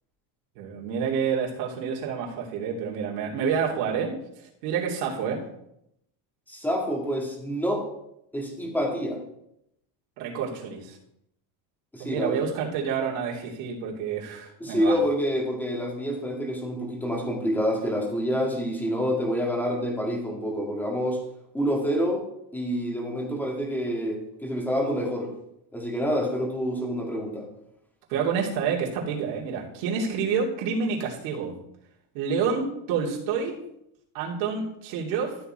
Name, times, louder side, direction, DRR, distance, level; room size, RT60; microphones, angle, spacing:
voice 1, 0.6-4.1 4.6-5.4 10.2-11.0 12.0-15.0 28.1-31.5 32.1-33.6 34.1-35.4, right 6 dB, 75° right, -2 dB, 3.1 m, -28 dB
voice 2, 6.5-7.9 8.3-9.2 11.9-12.4 14.6-21.2 21.5-22.2 22.5-25.3 25.7-27.5, equal, 5° left, -1 dB, 2.0 m, -27 dB
13.5 x 7.3 x 4.5 m, 0.78 s
cardioid pair, 175°, 49 cm